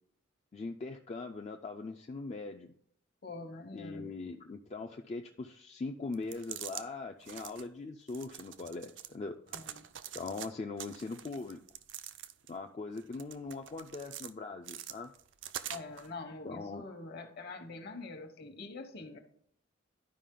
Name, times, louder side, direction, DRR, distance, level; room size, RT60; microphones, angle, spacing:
voice 1, 0.5-2.7 3.7-9.6 10.1-11.6 12.5-15.1 16.4-16.8, left 3 dB, 35° left, 4 dB, 0.4 m, -41 dB
voice 2, 3.2-4.2 9.5-9.8 15.7-19.2, left 3 dB, 55° left, 7 dB, 1.1 m, -45 dB
sound 1, 6.1-6.8 7.2-7.6 8.1-9.1 9.5-10.5 10.8-12.6 13.0-14.3 14.6-16.1, right 10 dB, 65° right, 0.5 m, -45 dB
11.5 x 5.0 x 3.7 m, 0.65 s
head